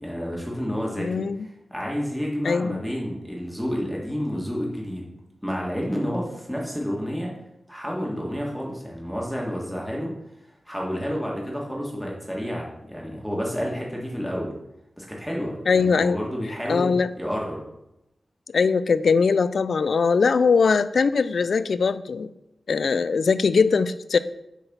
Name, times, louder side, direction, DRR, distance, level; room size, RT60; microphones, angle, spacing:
voice 1, 0.0-1.2 1.7-5.1 5.4-7.3 7.7-10.1 10.7-14.5 15.0-17.6, equal, 5° left, -3 dB, 1.6 m, -30 dB
voice 2, 1.0-1.5 2.4-2.8 15.7-16.2 16.7-17.1 18.5-22.3 22.7-24.2, left 5 dB, 80° left, 15 dB, 0.3 m, -21 dB
7.2 x 3.9 x 5.5 m, 0.87 s
wide cardioid pair, 85°, 0 cm